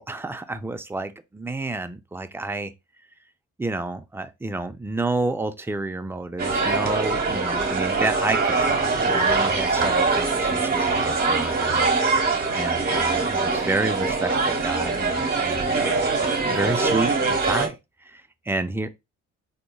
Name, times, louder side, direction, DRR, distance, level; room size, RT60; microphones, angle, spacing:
voice 1, 0.0-2.7 3.6-11.9 12.5-16.1 16.4-17.2 17.4-17.8 18.0-18.9, right 2 dB, 10° right, 0.3 m, -30 dB
sound 1, 6.4-17.7, right 3 dB, 30° right, 1.1 m, -23 dB
3.9 x 2.8 x 2.2 m
cardioid pair, 90°, 30 cm